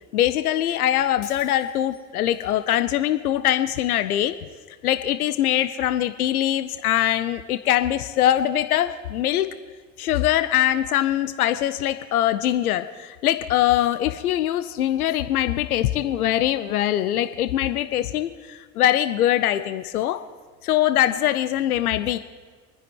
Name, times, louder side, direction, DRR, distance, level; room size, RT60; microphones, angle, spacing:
voice 1, 0.1-4.4 4.8-9.5 10.0-20.2 20.6-22.2, left 12 dB, 80° left, 12 dB, 0.7 m, -22 dB
Shatter, 1.2-2.2, left 6 dB, 60° left, 2.5 m, -47 dB
25.5 x 10.0 x 4.6 m, 1.4 s
hypercardioid pair, 70°, 44 cm